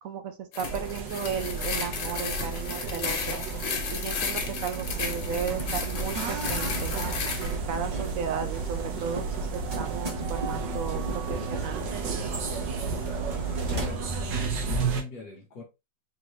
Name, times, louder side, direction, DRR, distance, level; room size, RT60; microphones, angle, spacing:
voice 1, 0.0-3.4 3.9-7.0 7.4-9.5 9.8-11.9, right 7 dB, 65° right, 0.8 m, -35 dB
sound 1, 0.5-7.5, left 6 dB, 90° left, 1.6 m, -34 dB
sound 2, 0.6-15.0, right 4 dB, 85° right, 1.5 m, -34 dB
sound 3, 4.7-13.9, right 4 dB, 30° right, 0.8 m, -34 dB
voice 2, 13.3-15.6, left 4 dB, 60° left, 1.4 m, -42 dB
4.7 x 2.7 x 3.1 m
omnidirectional pair, 1.9 m